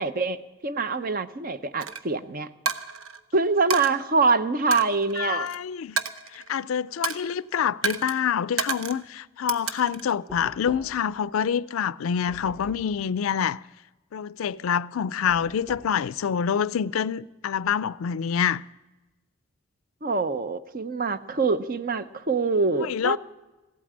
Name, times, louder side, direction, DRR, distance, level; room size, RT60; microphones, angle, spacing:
voice 1, 0.0-2.5 3.3-5.5 20.0-23.2, right 4 dB, 45° right, 0.7 m, -25 dB
Coin (dropping), 1.8-2.0 2.7-3.2 3.7-3.9 4.7-5.6 6.0-6.6 7.0-7.3 7.8-8.1 8.6-9.0 9.5-10.1, right 5 dB, 80° right, 0.8 m, -30 dB
voice 2, 5.2-6.0 6.3-13.6 14.1-18.6 22.8-23.2, left 8 dB, 85° left, 0.4 m, -26 dB
Knock, 10.3-11.2 12.3-13.0 15.3-16.0, equal, 5° right, 3.9 m, -45 dB
15.5 x 8.6 x 8.7 m
head